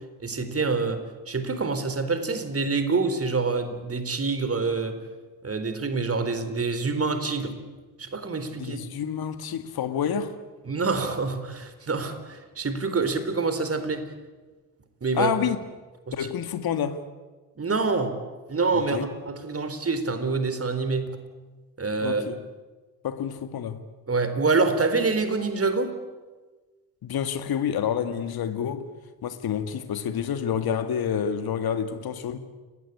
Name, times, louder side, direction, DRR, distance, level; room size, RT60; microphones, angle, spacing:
voice 1, 0.2-5.0 5.4-7.5 8.0-8.8 10.7-14.1 15.0-15.3 16.1-16.2 17.6-18.2 18.5-21.1 21.8-22.2 24.1-26.0, right 4 dB, 30° right, 4.2 m, -26 dB
voice 2, 8.5-10.4 15.1-15.6 16.1-17.1 18.7-19.1 22.0-22.4 23.0-23.8 27.0-28.9 29.2-32.4, left 8 dB, 50° left, 2.1 m, -28 dB
29.5 x 21.0 x 8.7 m
figure-of-eight pair, 45°, 48 cm